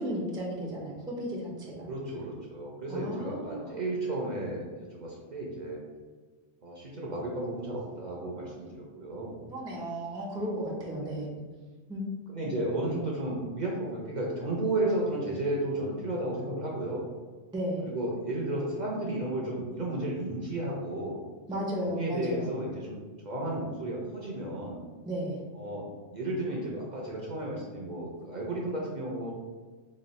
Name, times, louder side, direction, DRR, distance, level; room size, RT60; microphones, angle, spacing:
voice 1, 0.0-1.9 2.9-3.8 9.4-11.4 11.9-12.0 17.5-17.9 21.5-22.6 25.0-25.4, equal, 5° right, -4 dB, 0.3 m, -34 dB
voice 2, 1.9-5.8 6.6-9.4 11.0-11.3 12.3-17.1 17.8-21.2 21.8-23.0 23.2-24.8 25.5-25.9 26.1-29.3, right 1 dB, 50° right, -4 dB, 0.6 m, -33 dB
3.1 x 2.3 x 4.0 m, 1.4 s
omnidirectional pair, 1.3 m